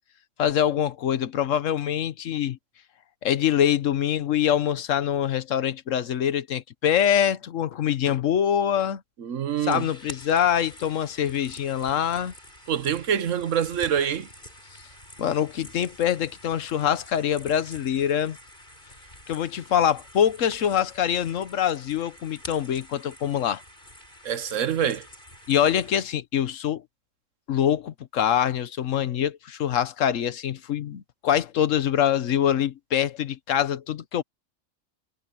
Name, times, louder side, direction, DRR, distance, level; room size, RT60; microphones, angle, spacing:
voice 1, 0.4-2.6 3.2-9.0 9.6-12.3 15.2-18.4 19.3-23.6 25.5-26.8 27.5-34.2, left 9 dB, 80° left, 1.3 m, -24 dB
voice 2, 9.2-9.9 12.7-14.3 24.2-25.1, right 8 dB, 75° right, 1.3 m, -25 dB
sound 1, 9.7-26.0, left 1 dB, 40° left, 7.4 m, -47 dB
omnidirectional pair, 1.3 m